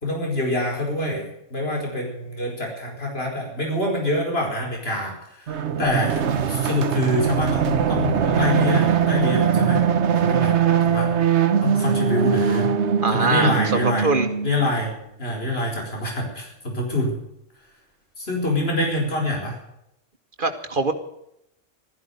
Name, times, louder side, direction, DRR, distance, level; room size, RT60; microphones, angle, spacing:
voice 1, 0.0-5.5 5.8-6.2 6.5-9.8 10.2-10.5 10.9-11.1 11.6-12.7 13.1-14.1 14.4-14.9 15.2-17.1 18.2-19.6, left 1 dB, 55° left, 0 dB, 5.2 m, -25 dB
sound 1, 5.5-14.7, right 8 dB, 65° right, 1.3 m, -21 dB
voice 2, 13.0-14.3 20.4-20.9, right 3 dB, 45° right, 7 dB, 1.9 m, -23 dB
15.5 x 14.0 x 6.6 m, 0.79 s
omnidirectional pair, 1.2 m